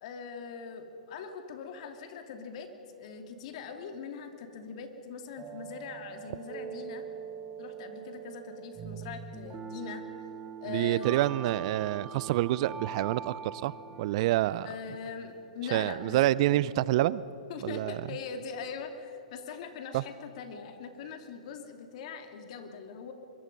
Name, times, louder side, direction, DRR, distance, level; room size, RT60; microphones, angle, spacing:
voice 1, 0.0-2.7 3.0-7.0 7.6-10.0 10.6-11.2 14.6-16.2 16.5-16.6 17.5-23.1, left 6 dB, 55° left, 6 dB, 2.7 m, -41 dB
sound 1, 5.4-15.5, right 7 dB, 20° right, 1.1 m, -43 dB
voice 2, 10.7-13.7 14.0-14.7 15.7-17.2 17.6-18.0 19.9-20.0, right 15 dB, 50° right, 20 dB, 0.5 m, -27 dB
25.0 x 22.5 x 5.4 m, 2.9 s
hypercardioid pair, 125°, 4 cm